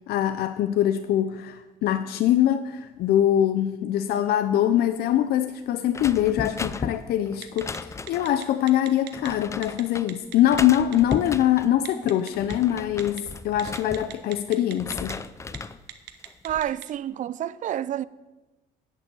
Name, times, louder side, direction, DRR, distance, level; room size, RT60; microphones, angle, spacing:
voice 1, 0.1-15.2, left 11 dB, 65° left, 0.5 m, -23 dB
sound 1, 5.9-8.4 9.1-10.1 10.5-11.7 12.2-14.4 14.7-15.8 16.2-16.7, left 4 dB, 15° left, 0.4 m, -35 dB
Telephone, 7.4-7.8 8.1-9.3 9.6-9.8 10.1-11.1 11.9-12.5 13.0-13.2 13.6-15.1 15.4-15.6 15.9-16.9, right 15 dB, 90° right, 0.9 m, -38 dB
voice 2, 16.4-18.0, right 11 dB, 50° right, 0.4 m, -29 dB
8.1 x 6.9 x 8.4 m
cardioid pair, 110°, 17 cm